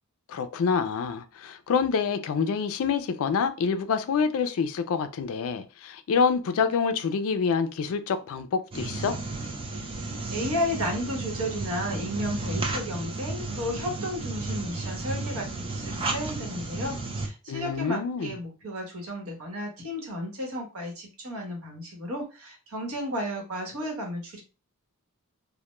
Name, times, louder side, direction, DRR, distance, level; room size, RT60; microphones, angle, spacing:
voice 1, 0.3-9.2 17.5-18.3, left 6 dB, 65° left, 0.3 m, -27 dB
sound 1, 8.7-17.3, right 3 dB, 25° right, 0.4 m, -33 dB
voice 2, 9.7-24.4, equal, 70° right, 1.0 m, -33 dB
2.2 x 2.1 x 2.9 m
head